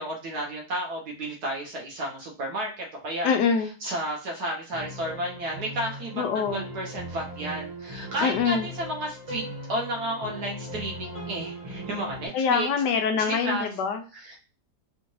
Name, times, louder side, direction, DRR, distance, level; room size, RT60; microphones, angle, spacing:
voice 1, 0.0-3.3 3.8-12.7 13.1-13.7 14.1-14.4, right 1 dB, 65° right, -1 dB, 1.5 m, -32 dB
voice 2, 3.2-3.7 6.2-6.6 8.2-8.7 12.3-14.0, left 6 dB, 80° left, 5 dB, 1.2 m, -24 dB
sound 1, 4.7-12.3, equal, 25° right, 1.0 m, -39 dB
4.2 x 2.5 x 3.1 m, 0.34 s
omnidirectional pair, 1.8 m